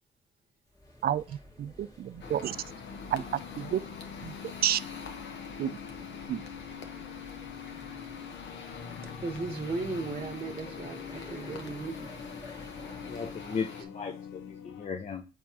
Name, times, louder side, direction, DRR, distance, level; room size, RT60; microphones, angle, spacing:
sound 1, 0.7-13.6, left 1 dB, 15° left, 1.6 m, -52 dB
voice 1, 1.0-2.6 3.1-3.8 4.2-4.8 5.6-5.8 6.3-6.4, right 10 dB, 50° right, 0.4 m, -31 dB
sound 2, 2.2-13.8, left 4 dB, 60° left, 1.1 m, -46 dB
sound 3, 2.5-14.9, left 9 dB, 90° left, 0.5 m, -45 dB
voice 2, 9.2-12.1 12.8-13.8, right 3 dB, 30° right, 0.9 m, -37 dB
voice 3, 13.1-15.2, left 5 dB, 35° left, 0.6 m, -36 dB
7.3 x 4.5 x 2.8 m
cardioid pair, 90°, 20 cm